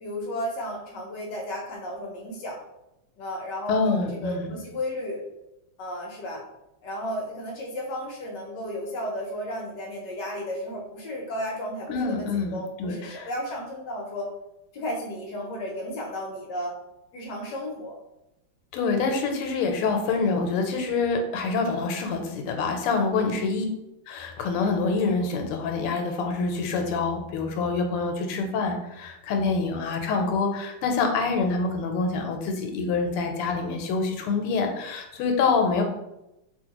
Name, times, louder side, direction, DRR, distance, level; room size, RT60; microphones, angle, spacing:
voice 1, 0.0-2.6 3.2-5.2 5.8-6.4 6.8-14.3 14.7-16.8 17.1-17.9 23.1-23.5, equal, 65° left, -1 dB, 1.1 m, -33 dB
voice 2, 3.7-4.5 11.9-13.3 18.7-23.7 24.1-35.8, left 4 dB, 85° left, 4 dB, 1.5 m, -26 dB
3.0 x 2.9 x 2.8 m, 0.89 s
omnidirectional pair, 2.4 m